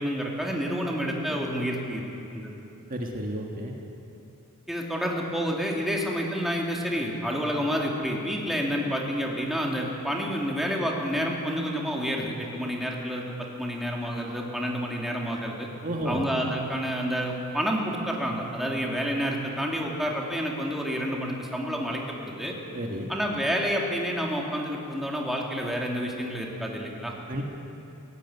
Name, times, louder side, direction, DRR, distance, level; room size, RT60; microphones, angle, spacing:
voice 1, 0.0-2.0 2.3-2.5 4.7-15.7 16.0-22.5 23.1-27.1, equal, ahead, -2 dB, 2.5 m, -29 dB
voice 2, 2.9-3.7 15.8-16.2 22.7-23.1 27.3-27.4, right 1 dB, 40° right, 0 dB, 1.6 m, -31 dB
17.0 x 16.5 x 9.6 m, 2.8 s
head